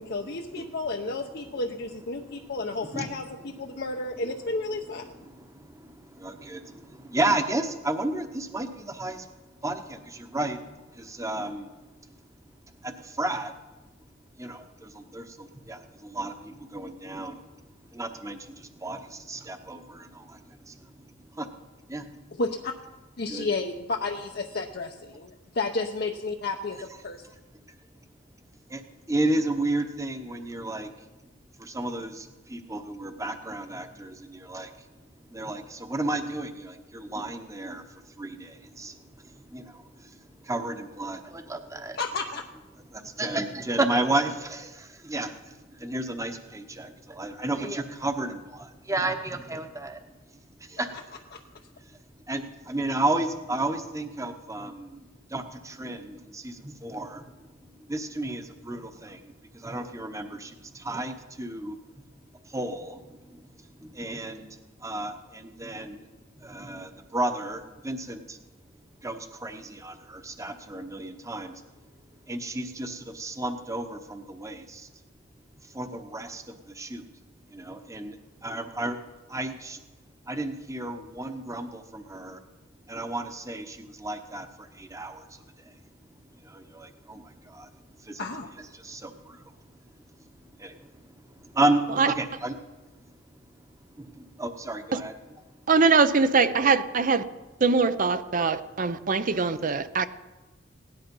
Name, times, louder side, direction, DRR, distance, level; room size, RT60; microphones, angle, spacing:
voice 1, 0.0-5.1 22.4-22.7 23.2-27.3 42.0-42.4 51.3-51.4 88.2-88.5, left 3 dB, 55° left, 0.8 m, -32 dB
voice 2, 2.9-3.6 5.0-9.3 9.6-11.7 12.0-12.2 12.8-13.5 14.4-21.5 21.9-22.2 23.3-23.5 27.7-27.8 28.7-28.8 29.1-31.0 31.6-34.9 35.3-42.0 42.9-50.0 50.6-51.2 51.8-52.0 52.3-62.1 62.4-66.1 66.4-68.4 69.0-71.6 72.3-74.9 75.6-77.0 77.5-79.0 79.3-79.8 80.2-82.4 82.9-85.8 86.3-88.2 88.6-89.8 90.2-92.5 92.8-93.1 93.8-95.1 95.5-95.6, right 2 dB, 15° right, 1.0 m, -33 dB
voice 3, 95.7-97.2 97.6-100.1, right 4 dB, 45° right, 0.6 m, -22 dB
17.0 x 10.5 x 5.4 m
head